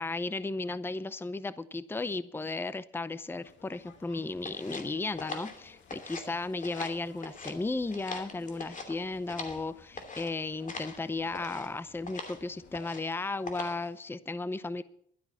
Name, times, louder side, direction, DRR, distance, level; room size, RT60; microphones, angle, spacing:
voice 1, 0.0-14.8, left 3 dB, 10° left, 16 dB, 0.6 m, -35 dB
sound 1, 3.4-12.8, left 6 dB, 65° left, 2.0 m, -57 dB
sound 2, 4.4-6.3 6.6-7.6 7.9-9.6 10.0-10.3 10.7-11.0 11.3-11.7 12.1-12.4 12.7-13.1 13.5-13.9, left 3 dB, 40° left, 2.8 m, -42 dB
12.0 x 10.0 x 7.1 m, 0.66 s
cardioid pair, 90°, 20 cm